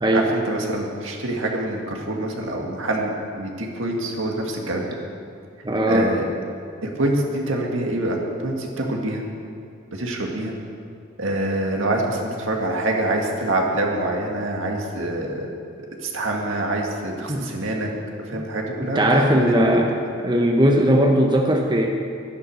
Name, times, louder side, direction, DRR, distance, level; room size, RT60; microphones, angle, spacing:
voice 1, 0.1-4.8 5.9-6.2 6.8-9.2 9.9-10.6 11.2-15.5 16.0-17.9 18.3-19.8, right 1 dB, 70° right, 0 dB, 2.0 m, -25 dB
voice 2, 5.6-6.1 17.3-17.5 18.3-18.4 18.9-19.9 20.2-21.9, equal, 20° right, 1 dB, 0.9 m, -18 dB
12.0 x 11.0 x 6.3 m, 2.3 s
head